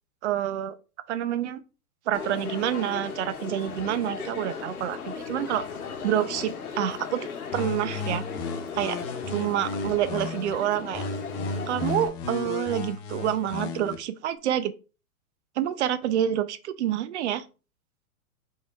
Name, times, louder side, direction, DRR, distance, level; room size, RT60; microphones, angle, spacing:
voice 1, 0.2-0.7 1.1-1.6 2.1-5.6 6.0-8.2 8.7-9.0 9.3-11.0 11.7-14.7 15.6-17.4, right 11 dB, 50° right, 0.6 m, -28 dB
Crowd, 2.1-12.1, left 6 dB, 75° left, 1.0 m, -37 dB
sound 1, 7.5-10.5 10.9-13.9, left 4 dB, 35° left, 0.8 m, -34 dB
5.0 x 3.8 x 2.3 m
hypercardioid pair, 115°, 44 cm